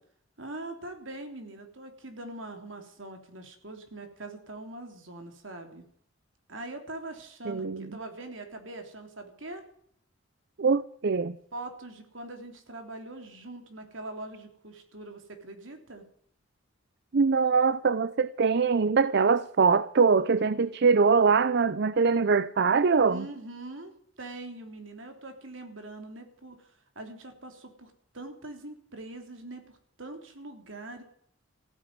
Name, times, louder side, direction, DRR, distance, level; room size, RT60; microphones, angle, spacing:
voice 1, 0.4-5.8 6.5-9.6 11.5-16.0 23.0-31.0, right 2 dB, 70° right, 3.3 m, -42 dB
voice 2, 7.5-7.9 10.6-11.4 17.1-23.3, right 5 dB, 55° right, 0.6 m, -23 dB
15.5 x 9.4 x 9.5 m
head